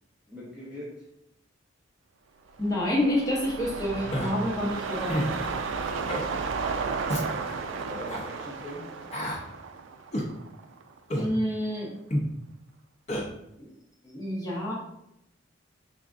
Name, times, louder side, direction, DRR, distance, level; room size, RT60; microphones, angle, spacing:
voice 1, 0.3-1.1 7.6-8.9, equal, 5° right, -8 dB, 0.9 m, -41 dB
sound 1, 2.5-11.0 11.4-11.5, right 5 dB, 75° right, 0.4 m, -34 dB
voice 2, 2.6-5.3 11.1-11.9 13.6-13.7 14.0-14.7, left 1 dB, 20° left, -6 dB, 1.1 m, -28 dB
Human voice, 4.1-4.3 5.1-5.3 6.1-6.3 7.1-7.3 8.1-8.2 9.1-9.4 10.1-10.3 11.1-11.3 12.1-12.3 13.1-13.3, equal, 35° left, 0.6 m, -29 dB
5.0 x 3.5 x 2.5 m, 0.80 s
head